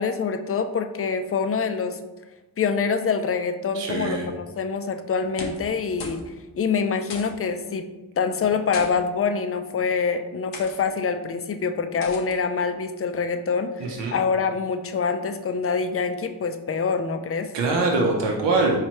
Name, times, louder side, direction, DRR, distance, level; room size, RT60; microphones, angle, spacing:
voice 1, 0.0-2.0 2.6-6.2 6.6-7.9 8.2-17.5, left 5 dB, 35° left, 8 dB, 0.4 m, -25 dB
voice 2, 3.7-4.3 13.8-14.1 17.5-18.8, right 3 dB, 80° right, 0 dB, 0.8 m, -23 dB
sound 1, 5.2-5.7 6.0-6.3 6.5-6.6 7.1-7.5 8.4-8.9 9.7-9.9 10.5-10.8 12.0-12.4, left 3 dB, 85° left, 0.8 m, -37 dB
4.5 x 3.2 x 3.0 m, 1.1 s
cardioid pair, 60°, 42 cm